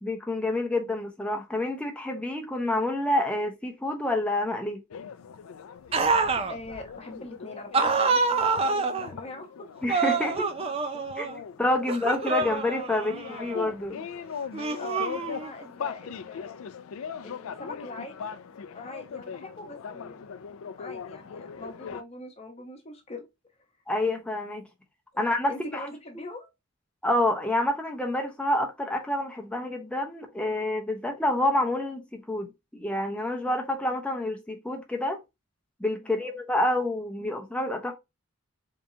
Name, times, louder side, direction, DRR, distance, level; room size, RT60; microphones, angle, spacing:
voice 1, 0.0-4.8 9.8-10.5 11.2-11.3 11.6-14.0 23.9-24.6 25.2-25.8 27.0-35.2 35.8-37.9, left 1 dB, 5° left, 0.8 m, -28 dB
sound 1, 4.9-22.0, left 6 dB, 75° left, 0.4 m, -40 dB
sound 2, 5.9-6.5 7.7-9.1 9.9-11.4 11.9-13.6 14.5-15.6, right 4 dB, 25° right, 0.4 m, -27 dB
voice 2, 6.5-9.7 14.8-16.7 17.2-18.4 18.7-20.2 20.8-23.3 25.1-26.5 36.0-36.3, left 2 dB, 30° left, 1.0 m, -42 dB
3.8 x 3.3 x 2.7 m
head